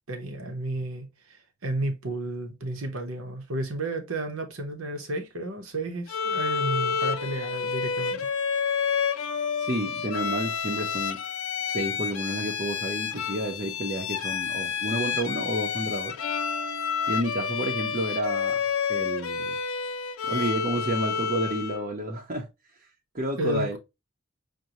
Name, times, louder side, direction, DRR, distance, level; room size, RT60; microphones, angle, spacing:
voice 1, 0.1-8.3 23.4-23.8, right 1 dB, 80° right, 0.9 m, -32 dB
Bowed string instrument, 6.1-21.9, left 6 dB, 80° left, 0.5 m, -29 dB
voice 2, 9.6-11.2 11.6-16.2 17.1-18.6 18.9-19.5 20.3-22.5 22.8-22.9 23.1-23.8, right 1 dB, 40° right, 0.7 m, -30 dB
6.4 x 2.2 x 2.9 m
head